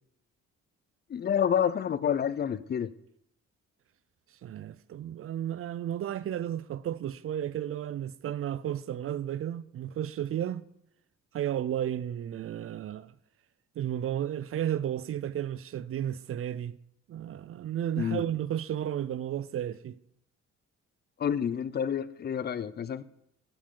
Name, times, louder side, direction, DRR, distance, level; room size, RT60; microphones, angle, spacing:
voice 1, 1.1-2.9 18.0-18.2 21.2-23.0, left 8 dB, 35° left, 0.5 m, -28 dB
voice 2, 4.4-10.6 11.3-13.1 13.8-16.8 17.1-20.0, right 10 dB, 50° right, 0.5 m, -33 dB
10.5 x 7.4 x 3.8 m
cardioid pair, 90°, 30 cm